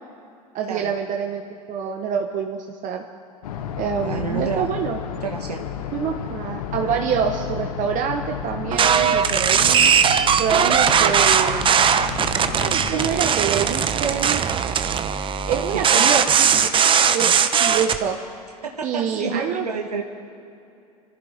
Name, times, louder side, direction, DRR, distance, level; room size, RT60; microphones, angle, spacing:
voice 1, 0.5-3.0 3.8-5.0 5.9-9.9 10.4-11.8 12.4-14.4 15.5-16.9 17.1-18.2 18.8-19.7, right 7 dB, 40° right, 3 dB, 1.2 m, -26 dB
sound 1, 3.4-13.2, left 8 dB, 70° left, 1.2 m, -32 dB
voice 2, 4.0-4.6 5.2-5.6 10.9-11.1 15.7-16.1 18.6-20.0, right 5 dB, 90° right, 2 dB, 1.3 m, -29 dB
sound 2, 8.7-18.0, right 7 dB, 25° right, 0.9 m, -19 dB
25.0 x 15.0 x 3.6 m, 2.6 s
hypercardioid pair, 85°, 20 cm